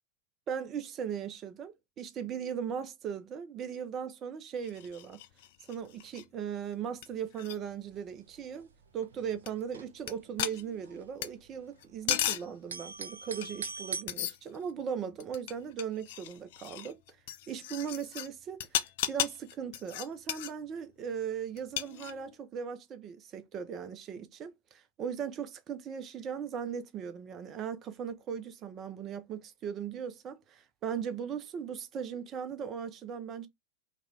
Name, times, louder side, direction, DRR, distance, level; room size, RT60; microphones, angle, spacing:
voice 1, 0.5-5.2 5.7-8.7 8.9-17.0 17.5-18.8 19.1-33.5, right 7 dB, 30° right, 0.6 m, -38 dB
sound 1, 4.6-6.2 6.7-6.8 7.0-7.1 7.3-7.6 9.5-9.6 10.1-10.2 10.4-11.3 11.8-12.5 13.4-13.8 14.1-14.7 15.2-18.3 18.6-20.5 21.6-22.4, left 12 dB, 50° left, 0.4 m, -36 dB
sound 2, 7.6-8.1 8.3-8.4 8.6-10.3 10.6-12.2 12.5-14.0, right 5 dB, 70° right, 0.7 m, -41 dB
3.6 x 2.2 x 3.2 m
figure-of-eight pair, 90°, 0 cm